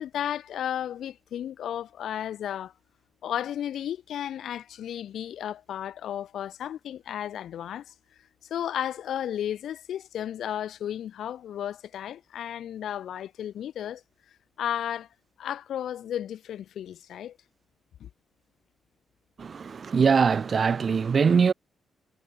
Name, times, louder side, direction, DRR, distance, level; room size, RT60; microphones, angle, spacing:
voice 1, 0.0-2.7 3.2-7.9 8.5-14.0 14.6-15.1 15.4-17.4 18.0-18.1, left 10 dB, 65° left, 1.4 m, -33 dB
voice 2, 19.4-21.5, right 6 dB, 35° right, 0.3 m, -22 dB
wide cardioid pair, 180°, 0 cm